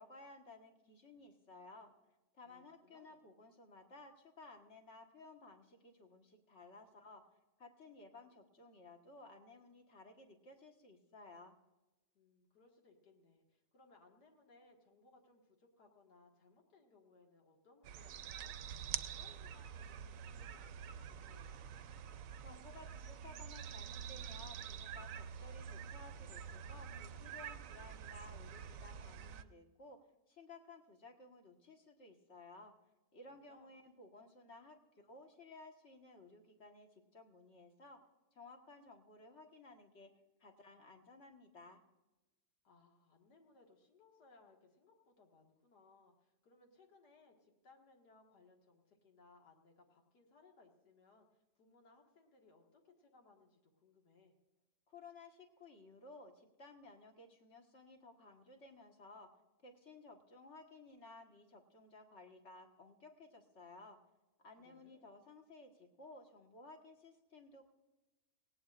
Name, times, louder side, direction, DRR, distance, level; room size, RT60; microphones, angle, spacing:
voice 1, 0.0-1.9 2.3-7.2 7.6-11.6 22.4-32.7 33.1-34.8 35.0-40.1 40.4-41.8 54.9-59.3 59.6-64.0 64.4-67.7, left 2 dB, 45° left, 3 dB, 1.8 m, -57 dB
voice 2, 2.4-3.2 12.1-21.8 33.3-33.7 42.6-54.3 64.6-65.1, left 3 dB, 80° left, 1 dB, 2.4 m, -67 dB
sound 1, 17.8-29.4, right 8 dB, 65° right, 0.9 m, -47 dB
18.5 x 17.5 x 2.5 m, 1.1 s
omnidirectional pair, 1.7 m